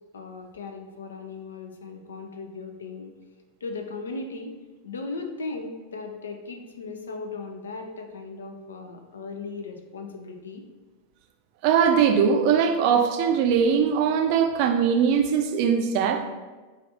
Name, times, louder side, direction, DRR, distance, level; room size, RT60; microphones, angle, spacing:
voice 1, 0.1-3.1 3.6-4.6 4.8-10.6, left 3 dB, 70° left, 4 dB, 0.4 m, -37 dB
voice 2, 11.6-16.3, right 7 dB, 45° right, 5 dB, 0.4 m, -21 dB
3.3 x 2.4 x 3.8 m, 1.3 s
figure-of-eight pair, 90°, 0 cm